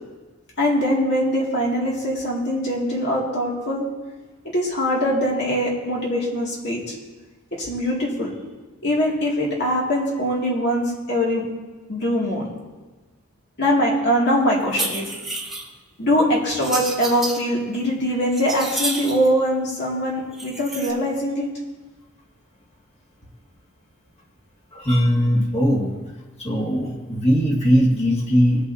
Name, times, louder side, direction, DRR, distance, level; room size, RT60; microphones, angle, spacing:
voice 1, 0.6-3.9 4.5-6.9 7.6-8.3 8.8-11.5 11.9-12.5 13.6-15.1 16.0-21.5, equal, 55° left, -4 dB, 2.3 m, -22 dB
sound 1, 14.6-15.7 16.5-17.4 17.9-19.3 20.3-20.9, right 2 dB, ahead, 1.3 m, -30 dB
voice 2, 24.7-25.9 26.4-28.7, equal, 30° left, -2 dB, 2.0 m, -19 dB
21.5 x 7.9 x 2.8 m, 1.3 s
head